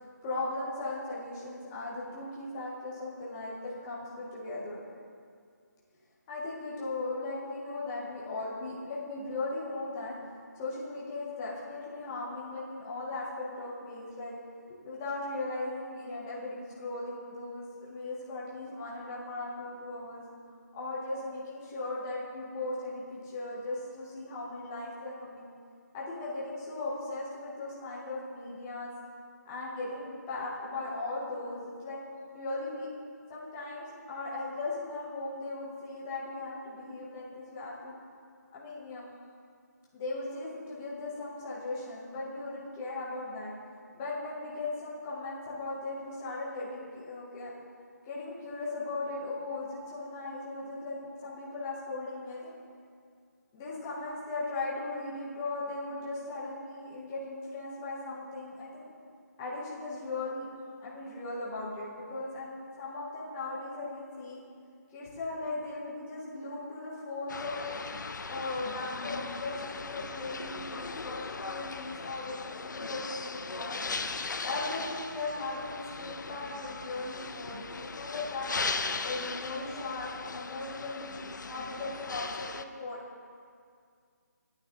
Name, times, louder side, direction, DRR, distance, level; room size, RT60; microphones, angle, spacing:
voice 1, 0.2-4.8 6.3-10.2 10.5-14.3 14.7-20.2 20.7-25.5 25.9-28.9 29.4-32.0 32.3-32.9 33.3-37.9 38.5-39.1 39.9-43.5 43.9-47.5 48.0-52.5 53.5-58.9 59.4-60.5 60.8-64.4 64.9-67.7 68.3-73.9 74.4-78.5 79.0-83.0, left 2 dB, 10° left, -7 dB, 0.6 m, -38 dB
sound 1, 67.3-82.6, left 4 dB, 80° left, 0.4 m, -38 dB
9.2 x 8.2 x 2.8 m, 2.2 s
figure-of-eight pair, 170°, 10 cm